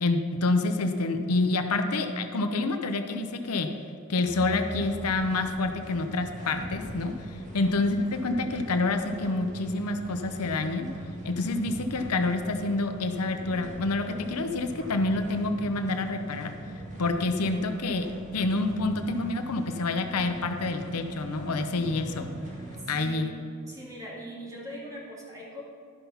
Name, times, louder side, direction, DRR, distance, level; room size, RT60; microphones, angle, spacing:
voice 1, 0.0-3.7 4.1-10.9 11.2-16.5 17.0-18.1 18.3-22.3 22.9-23.3, left 2 dB, 85° left, 6 dB, 0.7 m, -28 dB
sound 1, 4.3-22.8, right 1 dB, 35° right, 1.7 m, -42 dB
voice 2, 22.9-25.6, equal, 15° right, -4 dB, 2.1 m, -41 dB
12.5 x 5.6 x 5.6 m, 2.5 s
head